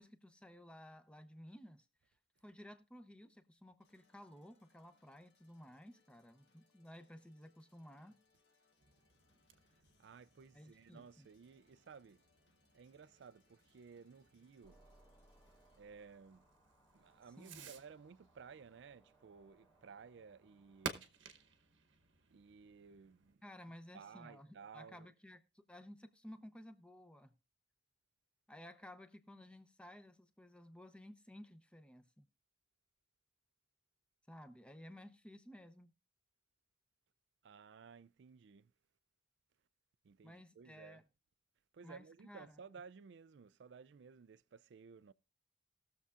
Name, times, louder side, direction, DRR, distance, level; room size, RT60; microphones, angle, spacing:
voice 1, 0.0-2.2 2.4-8.2 10.5-11.3 17.4-17.7 23.4-27.3 28.5-32.3 34.3-35.9 40.2-41.0 41.8-42.6, left 1 dB, 5° left, 0.7 m, -56 dB
sound 1, 3.8-15.8, left 4 dB, 65° left, 1.4 m, -77 dB
Fireworks, 8.8-23.4, right 5 dB, 85° right, 1.0 m, -55 dB
voice 2, 9.5-12.2 12.7-14.8 15.7-16.4 16.9-21.1 22.3-23.4 23.9-25.1 37.4-38.7 40.0-41.0 41.7-45.1, right 5 dB, 65° right, 0.4 m, -57 dB
sound 2, 14.6-21.0, right 1 dB, 25° left, 1.4 m, -70 dB
19.5 x 6.9 x 2.4 m
head